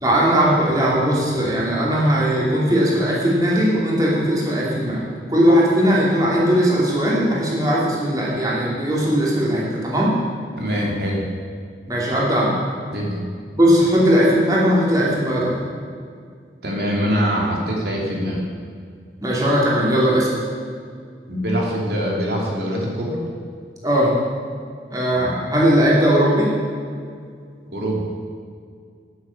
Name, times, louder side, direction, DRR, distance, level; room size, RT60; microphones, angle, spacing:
voice 1, 0.0-10.1 11.9-12.6 13.6-15.6 19.2-20.3 23.8-24.1 24.9-26.5, equal, 20° right, -5 dB, 2.8 m, -18 dB
voice 2, 10.6-11.2 12.9-13.2 16.6-18.4 21.3-23.2 25.1-25.3 27.7-28.0, equal, 65° right, -2 dB, 3.0 m, -23 dB
9.6 x 9.4 x 7.2 m, 2.2 s
head